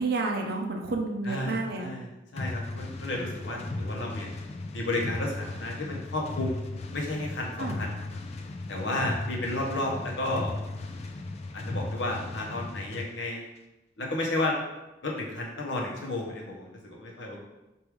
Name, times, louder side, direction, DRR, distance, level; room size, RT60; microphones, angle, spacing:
voice 1, 0.0-1.9 7.6-7.8, right 3 dB, 60° right, 2 dB, 0.6 m, -30 dB
voice 2, 1.2-4.3 4.7-6.6 6.9-8.0 8.7-10.6 11.5-13.5 14.0-14.6 15.0-17.4, left 2 dB, 70° left, -1 dB, 0.9 m, -32 dB
sound 1, 2.4-13.1, left 2 dB, 35° left, 0.3 m, -36 dB
3.4 x 2.6 x 4.6 m, 0.97 s
head